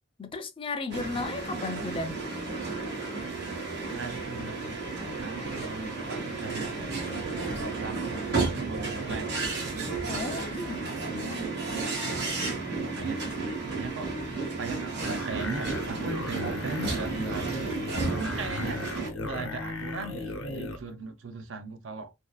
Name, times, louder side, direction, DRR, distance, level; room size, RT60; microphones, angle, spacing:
voice 1, 0.2-2.2 10.1-11.5, left 3 dB, 25° left, 0.4 m, -35 dB
sound 1, 0.9-19.1, right 3 dB, 55° right, 1.0 m, -32 dB
voice 2, 3.9-9.4 12.7-13.3 13.7-14.2 14.6-18.8 19.2-22.1, right 4 dB, 75° right, 0.5 m, -39 dB
sound 2, 15.0-20.8, left 2 dB, 85° left, 0.7 m, -37 dB
2.6 x 2.4 x 2.2 m
head